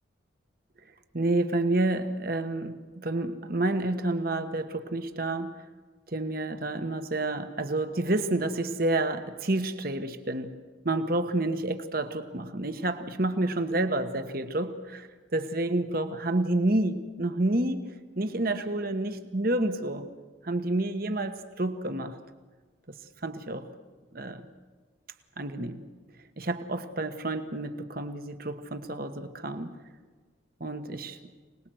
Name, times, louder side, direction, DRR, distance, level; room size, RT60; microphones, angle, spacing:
voice 1, 1.1-5.6 6.1-10.5 10.8-20.1 20.4-22.2 22.9-23.0 23.2-23.7 24.1-24.5 25.4-25.8 26.4-29.8 30.6-31.2, right 2 dB, 45° right, 9 dB, 1.3 m, -29 dB
25.5 x 19.5 x 7.8 m, 1.4 s
head